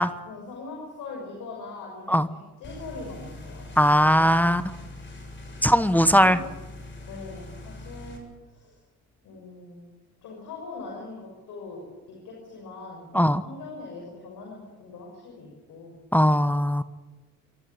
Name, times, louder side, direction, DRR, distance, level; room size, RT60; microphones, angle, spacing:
voice 1, 0.2-3.7 4.1-4.7 5.9-6.4 7.1-8.8 9.2-9.9 10.2-13.1 13.4-15.9, left 3 dB, 85° left, -1 dB, 6.4 m, -41 dB
sound 1, 2.6-8.2, left 2 dB, 40° left, 7.0 m, -42 dB
voice 2, 3.8-4.6 5.6-6.4 13.1-13.4 16.1-16.8, equal, 5° left, 10 dB, 1.1 m, -19 dB
27.0 x 13.0 x 8.9 m, 1.2 s
cardioid pair, 90°, 30 cm